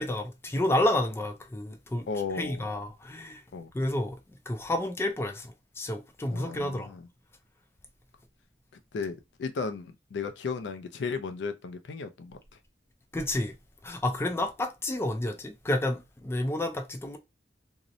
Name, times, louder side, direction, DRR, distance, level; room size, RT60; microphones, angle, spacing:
voice 1, 0.0-2.1 2.4-3.4 3.7-4.2 4.5-6.9 13.1-13.5 13.8-17.2, left 1 dB, 15° left, 0.3 m, -30 dB
voice 2, 2.1-2.7 3.5-3.7 6.3-7.1 8.9-12.4, left 4 dB, 85° left, 0.4 m, -35 dB
2.7 x 2.0 x 2.5 m
head